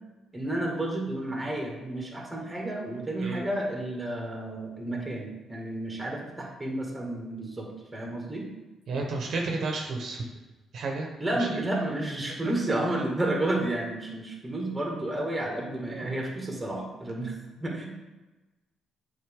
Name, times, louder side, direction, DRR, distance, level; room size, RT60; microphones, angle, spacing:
voice 1, 0.3-8.4 11.2-17.9, right 1 dB, 10° right, -1 dB, 1.9 m, -31 dB
voice 2, 8.9-10.3 10.7-11.5 15.9-16.2, right 3 dB, 65° right, 1 dB, 1.0 m, -32 dB
7.8 x 4.1 x 3.7 m, 1.1 s
cardioid pair, 90°, 0 cm